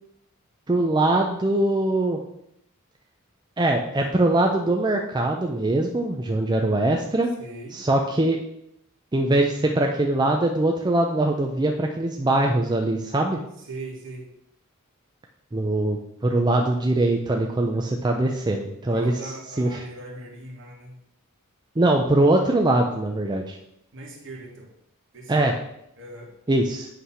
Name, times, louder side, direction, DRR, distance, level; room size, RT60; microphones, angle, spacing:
voice 1, 0.7-2.2 3.6-7.3 7.7-8.4 9.1-13.4 15.5-19.1 19.6-19.8 21.8-23.6 25.3-25.5 26.5-26.9, right 2 dB, 20° right, 2 dB, 0.4 m, -22 dB
voice 2, 7.4-7.8 13.6-14.3 18.9-21.0 23.9-24.7 25.1-25.5 26.0-26.3, right 1 dB, 60° right, -1 dB, 1.8 m, -39 dB
7.9 x 3.3 x 5.6 m, 0.77 s
head